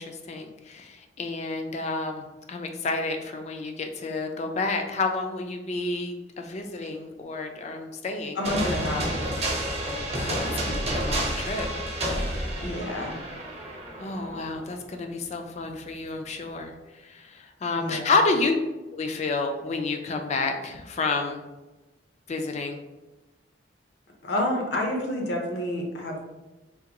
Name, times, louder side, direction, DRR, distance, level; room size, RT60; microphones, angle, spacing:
voice 1, 0.0-8.4 9.8-11.7 14.0-18.5 18.9-21.4 22.3-22.8, left 3 dB, 40° left, 4 dB, 0.4 m, -30 dB
voice 2, 8.4-9.1 12.6-13.2 17.8-18.1 24.2-26.3, left 1 dB, 70° left, 1 dB, 0.7 m, -29 dB
Steampunk Music, 8.4-15.0, right 1 dB, 35° right, 0.8 m, -30 dB
3.6 x 2.2 x 2.8 m, 1.1 s
head